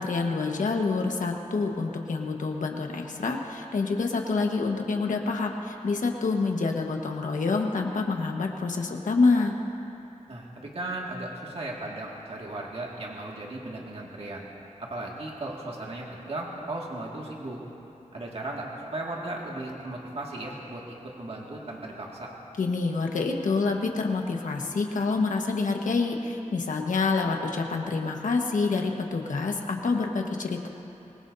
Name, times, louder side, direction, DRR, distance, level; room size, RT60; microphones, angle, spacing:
voice 1, 0.0-9.5 22.6-30.7, left 4 dB, 85° left, 2 dB, 1.4 m, -27 dB
voice 2, 10.3-14.5 14.8-17.6 18.1-22.3, right 2 dB, 50° right, -3 dB, 2.1 m, -36 dB
24.5 x 20.0 x 2.7 m, 2.9 s
wide cardioid pair, 105°, 13 cm